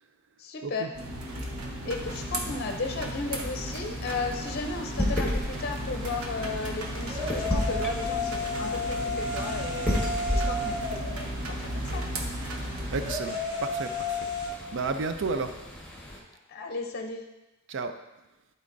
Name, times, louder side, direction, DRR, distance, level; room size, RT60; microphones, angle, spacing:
voice 1, 0.4-0.9 1.8-10.0 10.3-12.0 16.5-17.2, left 4 dB, 50° left, 4 dB, 0.6 m, -35 dB
sound 1, 0.9-13.1, right 1 dB, 80° right, 1.0 m, -35 dB
sound 2, 2.0-16.2, left 1 dB, 5° left, 1.3 m, -35 dB
sound 3, 4.0-14.5, left 2 dB, 30° right, 1.8 m, -35 dB
voice 2, 12.9-14.2 14.7-15.5 17.7-17.9, right 4 dB, 60° right, 9 dB, 0.5 m, -32 dB
11.5 x 4.2 x 2.6 m, 1.0 s
head